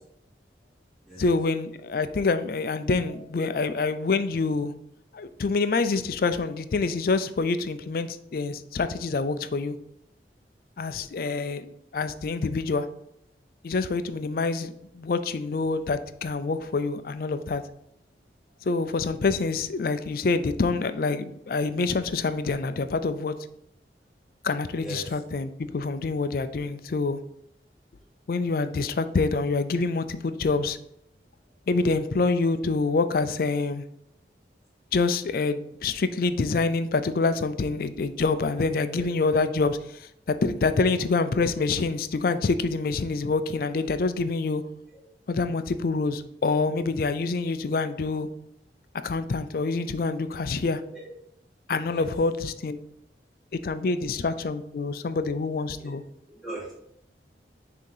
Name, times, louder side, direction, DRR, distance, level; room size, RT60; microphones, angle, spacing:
voice 1, 1.2-4.7 5.1-9.8 10.8-12.9 13.6-17.6 18.6-23.4 24.4-27.2 28.3-30.8 31.7-33.8 34.9-44.6 45.3-48.3 49.0-50.8 51.7-52.8 53.6-56.0, left 3 dB, 50° left, 11 dB, 0.4 m, -26 dB
voice 2, 24.8-25.2 38.9-39.1 44.9-45.0 50.9-51.1 51.8-52.1 56.3-56.7, right 1 dB, ahead, -8 dB, 2.1 m, -40 dB
6.3 x 2.9 x 5.4 m, 0.76 s
head